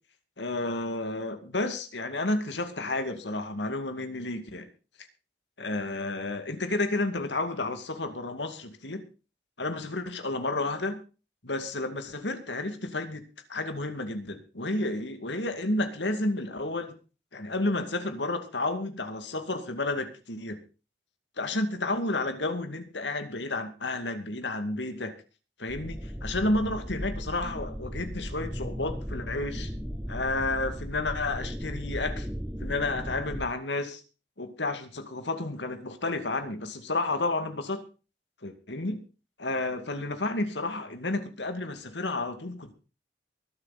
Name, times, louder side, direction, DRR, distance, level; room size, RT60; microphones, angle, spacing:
voice 1, 0.4-4.7 5.6-9.1 9.6-11.0 11.4-13.2 13.5-17.0 17.3-20.6 21.4-25.1 25.6-29.7 30.1-32.3 32.6-34.0 34.4-37.8 38.4-39.0 39.4-42.7, left 2 dB, 90° left, 8 dB, 2.3 m, -31 dB
sound 1, 25.7-33.4, equal, 10° right, 3.0 m, -36 dB
23.5 x 8.0 x 4.2 m, 0.34 s
head